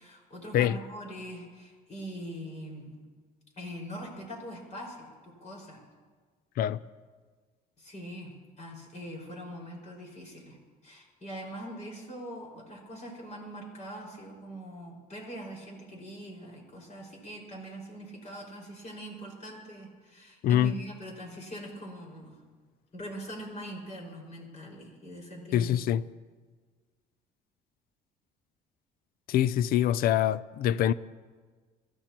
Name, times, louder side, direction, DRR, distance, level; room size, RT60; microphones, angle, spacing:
voice 1, 0.0-2.9 3.6-5.8 7.8-8.3 8.6-10.6 10.8-22.4 22.9-25.7, equal, 45° left, 5.4 m, -42 dB
voice 2, 20.4-20.7 25.5-26.1 29.3-30.9, left 11 dB, 60° left, 0.4 m, -24 dB
27.5 x 14.0 x 3.0 m
cardioid pair, 110°, 17 cm